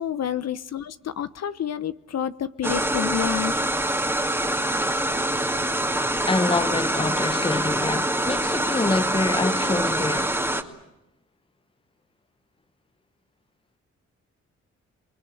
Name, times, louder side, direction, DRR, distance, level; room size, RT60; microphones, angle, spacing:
voice 1, 0.0-3.7, left 9 dB, 60° left, 0.9 m, -29 dB
sound 1, 2.6-10.6, right 1 dB, 10° right, 2.5 m, -25 dB
voice 2, 6.2-10.4, left 3 dB, 20° left, 1.0 m, -26 dB
26.5 x 20.5 x 9.1 m
supercardioid pair, 55°, 30 cm